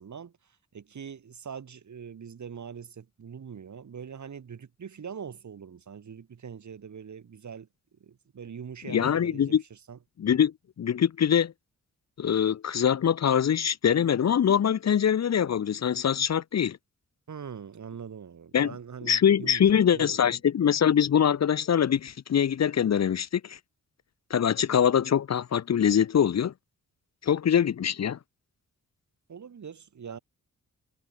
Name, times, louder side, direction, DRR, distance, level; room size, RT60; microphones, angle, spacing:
voice 1, 0.0-10.0 17.3-20.4 29.3-30.2, right 7 dB, 60° right, 7.1 m, -43 dB
voice 2, 8.9-9.6 10.2-10.5 10.8-11.5 12.2-16.8 18.5-18.7 19.0-23.6 24.3-26.5 27.2-28.2, left 8 dB, 55° left, 0.8 m, -23 dB
wide cardioid pair, 180°, 32 cm